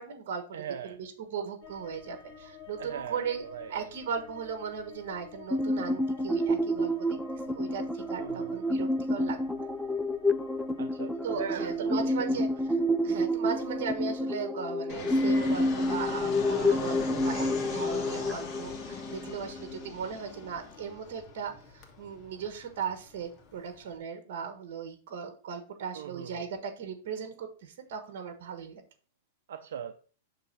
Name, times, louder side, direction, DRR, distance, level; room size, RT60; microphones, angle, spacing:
voice 1, 0.0-0.4 0.8-6.9 7.5-9.4 11.2-12.5 13.0-28.8, right 6 dB, 65° right, 7 dB, 1.4 m, -37 dB
voice 2, 0.5-1.0 2.8-3.7 8.1-8.7 10.8-12.4 25.9-26.5 29.5-29.9, right 8 dB, 80° right, 7 dB, 0.6 m, -40 dB
sound 1, 1.6-14.2, left 6 dB, 50° left, 2.0 m, -51 dB
sound 2, 5.5-19.9, left 1 dB, ahead, 0.4 m, -29 dB
Fixed-wing aircraft airplane, 14.9-23.9, left 4 dB, 30° left, 1.3 m, -41 dB
6.8 x 3.5 x 5.6 m, 0.38 s
supercardioid pair, 140°, 0 cm